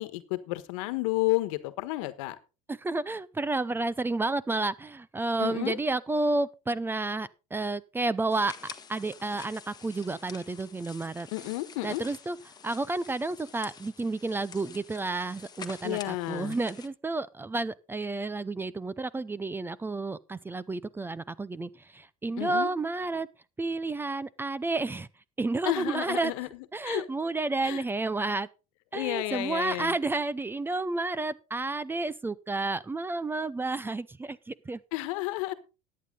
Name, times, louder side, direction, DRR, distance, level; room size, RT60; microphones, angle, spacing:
voice 1, 0.0-2.4 5.4-5.8 11.3-12.0 15.8-16.6 22.4-22.7 25.6-26.5 26.8-27.0 27.6-27.8 28.9-29.9 34.9-35.5, left 19 dB, 80° left, 1.3 m, -31 dB
voice 2, 2.7-8.5 8.9-11.3 11.8-12.4 12.6-23.3 23.6-25.1 25.4-26.3 26.7-28.5 28.9-34.8, right 3 dB, 10° right, 0.5 m, -31 dB
sound 1, 8.3-16.9, left 6 dB, 25° left, 1.4 m, -48 dB
14.0 x 9.6 x 3.8 m
supercardioid pair, 115°, 17 cm